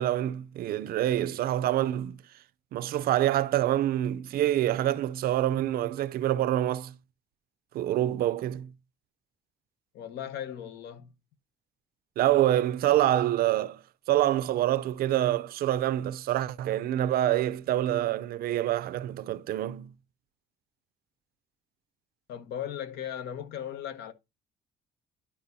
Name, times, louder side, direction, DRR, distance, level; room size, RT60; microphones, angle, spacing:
voice 1, 0.0-2.2 2.7-6.9 7.7-8.7 12.2-13.8 14.1-19.9, right 13 dB, 65° right, 0.5 m, -26 dB
voice 2, 9.9-11.1 22.3-24.1, left 10 dB, 80° left, 1.1 m, -37 dB
11.5 x 4.8 x 2.7 m
cardioid pair, 110°, 17 cm